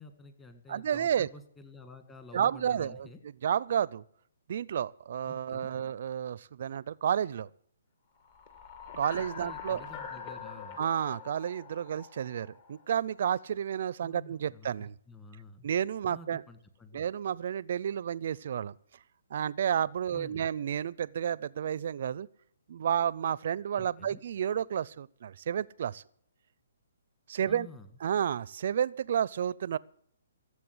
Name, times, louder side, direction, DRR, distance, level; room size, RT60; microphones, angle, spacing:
voice 1, 0.0-3.2 5.3-5.7 9.4-10.8 14.0-15.7 16.1-17.0 20.1-20.5 24.0-24.2 27.4-27.9, left 2 dB, 15° left, 7 dB, 1.7 m, -50 dB
voice 2, 0.7-1.3 2.3-4.0 4.5-7.5 9.0-9.8 10.8-14.9 15.6-16.4 16.9-18.7 19.3-22.3 22.7-26.0 27.3-27.7 28.0-29.8, right 9 dB, 55° right, 23 dB, 0.5 m, -31 dB
sound 1, 8.2-12.9, left 6 dB, 40° left, 2.3 m, -44 dB
16.0 x 7.6 x 7.9 m, 0.64 s
hypercardioid pair, 150°, 0 cm